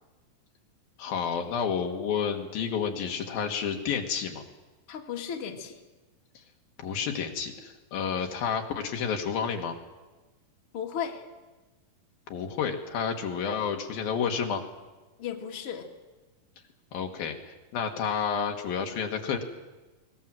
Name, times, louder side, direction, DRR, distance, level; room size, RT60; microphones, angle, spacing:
voice 1, 1.0-4.4 6.8-9.8 12.3-14.6 16.9-19.4, left 7 dB, 80° left, 3 dB, 3.5 m, -30 dB
voice 2, 4.9-5.8 10.7-11.2 15.2-15.9, left 8 dB, 45° left, 1 dB, 2.7 m, -35 dB
22.0 x 20.0 x 7.6 m, 1.2 s
omnidirectional pair, 4.1 m